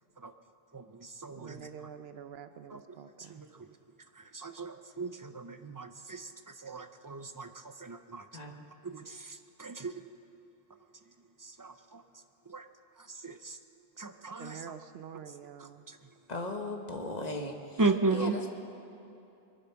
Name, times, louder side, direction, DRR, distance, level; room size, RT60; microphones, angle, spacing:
voice 1, 0.7-1.9 2.7-8.3 8.8-10.1 10.9-12.7 12.9-13.6 14.0-14.7 15.6-16.3 17.8-18.4, right 3 dB, 25° right, 8 dB, 0.4 m, -37 dB
voice 2, 1.4-3.4 14.4-15.9, right 8 dB, 70° right, 11 dB, 0.9 m, -47 dB
voice 3, 16.3-17.8 18.1-18.5, left 2 dB, 40° left, 4 dB, 1.4 m, -37 dB
22.5 x 10.0 x 5.8 m, 2.8 s
omnidirectional pair, 1.1 m